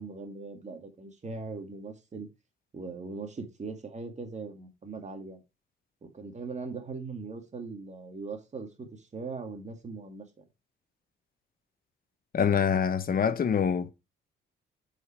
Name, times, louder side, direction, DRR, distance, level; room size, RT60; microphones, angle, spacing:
voice 1, 0.0-2.3 2.7-5.4 6.0-10.3, right 4 dB, 35° right, 2.1 m, -40 dB
voice 2, 12.3-13.9, left 7 dB, 45° left, 1.1 m, -25 dB
8.1 x 5.1 x 4.4 m
cardioid pair, 90°, 20 cm